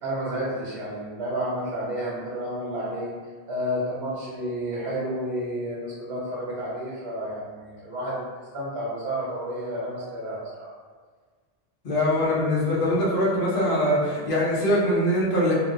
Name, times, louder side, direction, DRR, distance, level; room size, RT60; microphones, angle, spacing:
voice 1, 0.0-3.1 3.5-10.7, equal, 90° right, -7 dB, 1.0 m, -31 dB
voice 2, 11.8-15.5, left 1 dB, 60° left, -7 dB, 1.0 m, -22 dB
2.9 x 2.5 x 2.5 m, 1.5 s
omnidirectional pair, 1.1 m